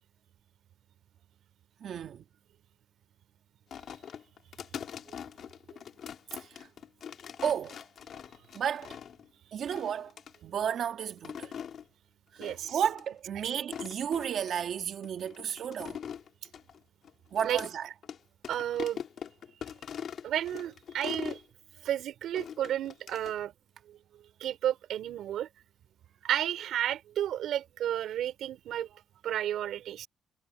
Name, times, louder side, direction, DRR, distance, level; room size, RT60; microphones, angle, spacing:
voice 1, 1.8-2.2 6.4-6.7 7.4-7.8 8.5-9.0 9.5-10.1 10.4-11.5 12.3-16.0 17.3-17.9, right 8 dB, 55° right, 2.1 m, -33 dB
sound 1, 3.7-9.3 9.7-10.4 11.0-11.8 12.4-12.7 13.0-13.1 13.6-14.5 15.0-17.7 18.0-18.2 18.4-21.4 22.3-23.4, left 8 dB, 55° left, 3.0 m, -42 dB
voice 2, 12.4-12.8 17.4-17.6 18.5-19.0 20.2-21.4 21.8-23.5 23.9-24.0 24.4-25.5 26.2-28.9 29.2-30.1, right 11 dB, 70° right, 4.1 m, -32 dB
cardioid pair, 140°, 0 cm